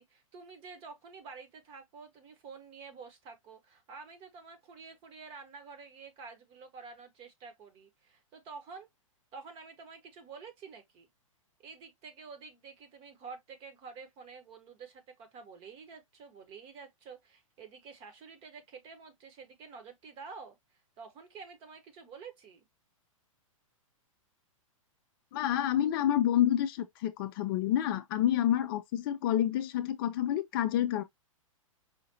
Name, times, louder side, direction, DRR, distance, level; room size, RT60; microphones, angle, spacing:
voice 1, 0.0-8.9 9.3-11.1 11.6-20.6 21.0-22.7, right 5 dB, 30° right, 1.2 m, -49 dB
voice 2, 25.3-31.0, left 11 dB, 40° left, 0.5 m, -28 dB
5.0 x 2.5 x 2.7 m
figure-of-eight pair, 110°, 18 cm